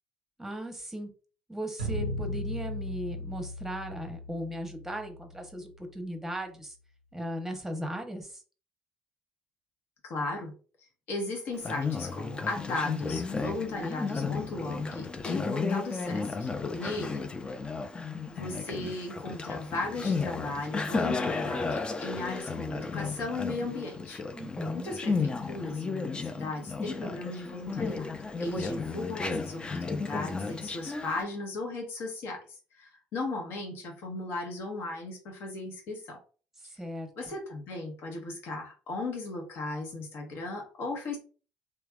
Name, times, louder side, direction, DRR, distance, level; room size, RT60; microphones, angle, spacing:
voice 1, 0.4-1.1 1.5-6.7 7.1-8.4 24.3-24.9 36.8-37.1, equal, 5° right, 5 dB, 1.0 m, -37 dB
sound 1, 1.8-6.1, left 1 dB, 85° right, 0.6 m, -37 dB
voice 2, 10.0-10.5 11.1-17.3 18.3-24.2 24.7-28.1 28.4-36.2 36.7-36.8 37.2-41.2, left 2 dB, 55° left, 1 dB, 1.3 m, -36 dB
Conversation, 11.5-31.2, left 4 dB, 20° left, 0.5 m, -33 dB
3.2 x 3.0 x 2.4 m, 0.37 s
figure-of-eight pair, 55°, 4 cm